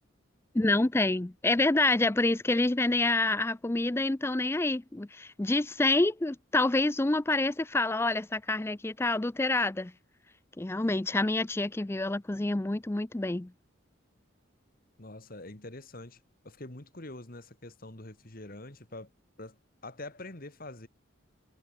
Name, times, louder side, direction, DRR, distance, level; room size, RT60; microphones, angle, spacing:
voice 1, 0.5-9.9 10.6-13.5, left 2 dB, 10° left, 0.4 m, -27 dB
voice 2, 15.0-19.1 19.4-20.9, left 2 dB, 45° left, 2.3 m, -45 dB
head